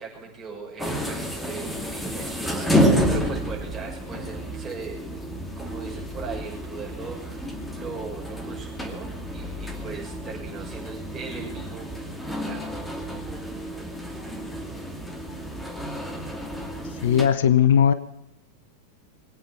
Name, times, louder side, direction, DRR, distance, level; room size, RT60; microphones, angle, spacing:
voice 1, 0.0-5.3 5.6-12.7 13.2-13.3, right 5 dB, 20° right, -3 dB, 6.8 m, -39 dB
sound 1, 0.8-17.3, equal, 5° left, 2.4 m, -30 dB
voice 2, 17.0-17.9, left 9 dB, 55° left, 14 dB, 0.7 m, -18 dB
21.5 x 9.0 x 6.2 m, 0.87 s
figure-of-eight pair, 90°, 0 cm